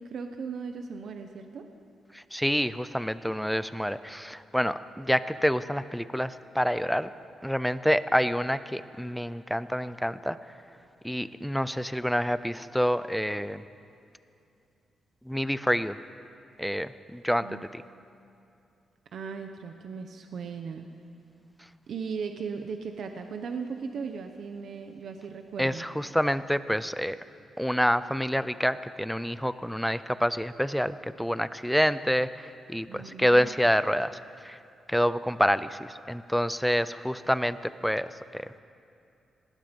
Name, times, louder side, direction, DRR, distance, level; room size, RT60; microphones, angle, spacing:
voice 1, 0.0-1.6 17.4-17.6 19.1-20.8 21.9-25.8 32.9-33.5, right 5 dB, 55° right, 5 dB, 1.1 m, -37 dB
voice 2, 2.1-7.1 7.4-10.4 11.0-13.6 15.3-15.9 16.6-17.5 17.7-17.8 25.6-27.2 27.6-34.6 34.9-38.4, equal, ahead, 14 dB, 0.5 m, -27 dB
26.0 x 20.0 x 5.4 m, 2.6 s
wide cardioid pair, 170°, 0 cm